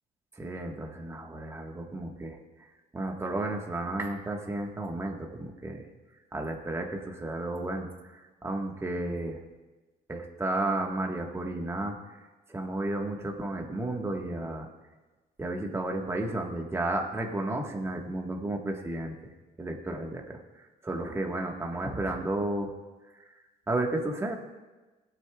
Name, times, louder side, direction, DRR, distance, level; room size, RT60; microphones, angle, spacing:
voice 1, 0.4-2.4 2.9-5.9 6.3-9.4 10.1-12.0 12.5-14.7 15.4-19.2 19.6-22.7 23.1-23.3 23.7-24.4, right 2 dB, 15° right, 1 dB, 1.4 m, -33 dB
20.5 x 9.1 x 2.3 m, 1.2 s
cardioid pair, 110°, 17 cm